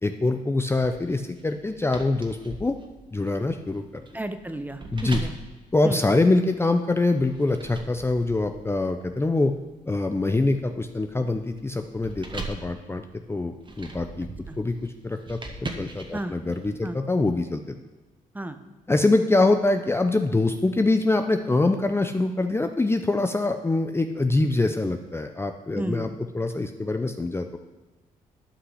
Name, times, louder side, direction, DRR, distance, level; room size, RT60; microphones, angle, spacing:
voice 1, 0.0-2.7 3.1-3.8 4.9-5.3 5.7-9.5 9.9-13.0 13.3-14.3 14.6-15.4 15.8-17.7 18.9-26.1 26.3-27.6, left 2 dB, 15° left, 6 dB, 0.6 m, -24 dB
sound 1, 0.8-6.6 7.2-16.7, right 3 dB, 35° right, 1.6 m, -41 dB
voice 2, 4.1-5.3 5.8-6.0 14.5-14.6 16.1-16.3 16.8-17.0 18.3-18.6 25.8-26.2, right 1 dB, 10° right, 9 dB, 0.9 m, -33 dB
11.5 x 5.7 x 5.6 m, 1.2 s
cardioid pair, 75°, 15 cm